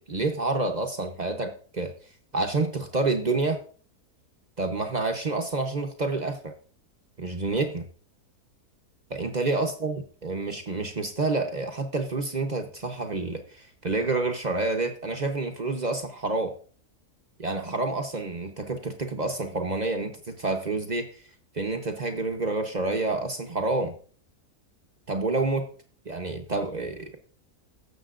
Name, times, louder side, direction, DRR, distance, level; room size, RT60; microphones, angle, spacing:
voice 1, 0.1-1.9 2.3-3.6 4.6-6.5 7.2-7.8 9.1-9.9 10.2-16.6 17.4-21.1 21.5-23.9 25.1-25.7 26.1-27.2, right 3 dB, 35° right, 4 dB, 0.7 m, -28 dB
16.0 x 7.0 x 2.5 m, 0.43 s
omnidirectional pair, 1.7 m